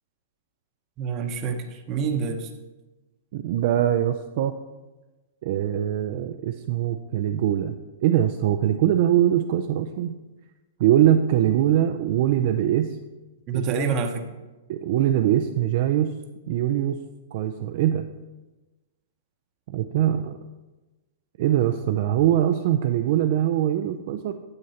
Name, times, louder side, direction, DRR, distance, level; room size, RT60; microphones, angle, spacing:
voice 1, 1.0-2.5 13.5-14.2, right 5 dB, 30° right, 5 dB, 0.8 m, -27 dB
voice 2, 3.3-4.5 5.4-7.7 8.0-10.2 10.8-13.0 13.5-14.0 14.7-16.1 16.5-17.0 17.3-18.0 19.7-20.4 21.4-24.3, right 11 dB, 55° right, 6 dB, 0.4 m, -22 dB
9.4 x 7.4 x 2.8 m, 1.2 s
hypercardioid pair, 145°, 0 cm